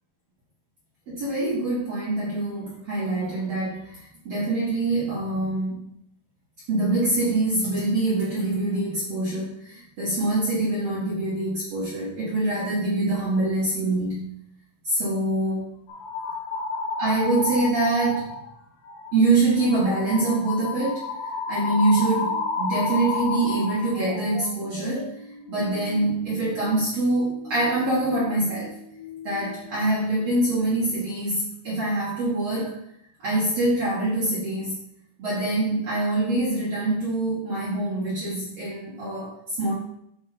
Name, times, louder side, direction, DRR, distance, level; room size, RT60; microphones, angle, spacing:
voice 1, 1.1-5.8 6.7-14.3 14.8-15.7 17.0-18.4 19.1-21.1 21.5-25.1 25.5-28.7 29.2-32.7 33.2-34.8 35.2-39.7, right 2 dB, 85° right, -8 dB, 1.4 m, -25 dB
sound 1, 15.9-18.5 18.8-19.2 19.6-29.9 30.2-30.9, left 4 dB, 85° left, 4.4 m, -33 dB
10.0 x 4.7 x 4.3 m, 0.74 s
omnidirectional pair, 5.9 m